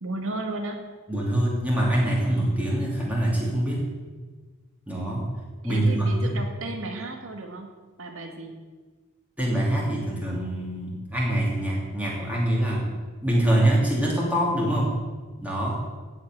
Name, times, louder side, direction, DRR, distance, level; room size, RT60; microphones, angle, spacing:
voice 1, 0.0-0.8 5.6-8.6, right 2 dB, 65° right, 4 dB, 2.0 m, -34 dB
voice 2, 1.1-3.9 4.9-5.3 5.6-6.3 9.4-12.9 13.2-15.0 15.4-15.8, right 1 dB, 5° right, -4 dB, 2.7 m, -24 dB
15.0 x 5.9 x 9.0 m, 1.4 s
head